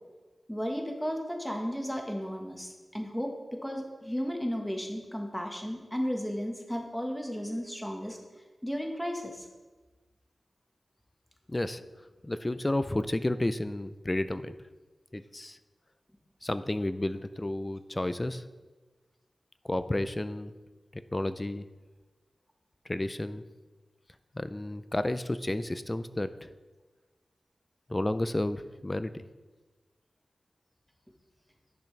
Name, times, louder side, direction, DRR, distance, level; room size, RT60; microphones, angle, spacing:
voice 1, 0.5-8.2 8.6-9.5, equal, 5° left, 2 dB, 1.3 m, -34 dB
voice 2, 11.5-11.8 12.2-14.6 15.1-15.6 16.4-18.4 19.6-20.5 20.9-21.7 22.9-23.4 24.3-26.5 27.9-29.3, left 1 dB, 25° left, 12 dB, 0.4 m, -31 dB
10.5 x 6.0 x 3.3 m, 1.3 s
wide cardioid pair, 65°, 0 cm